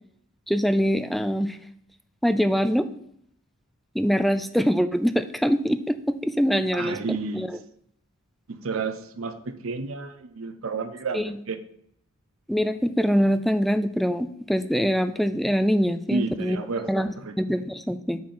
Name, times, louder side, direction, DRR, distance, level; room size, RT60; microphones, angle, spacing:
voice 1, 0.5-1.6 2.2-2.9 3.9-7.6 11.1-11.2 12.5-16.6 16.9-17.1 17.4-18.2, equal, ahead, 10 dB, 0.3 m, -24 dB
voice 2, 6.7-7.5 8.5-11.6 16.1-17.4, right 4 dB, 70° right, 10 dB, 0.7 m, -31 dB
8.4 x 4.3 x 6.0 m, 0.72 s
head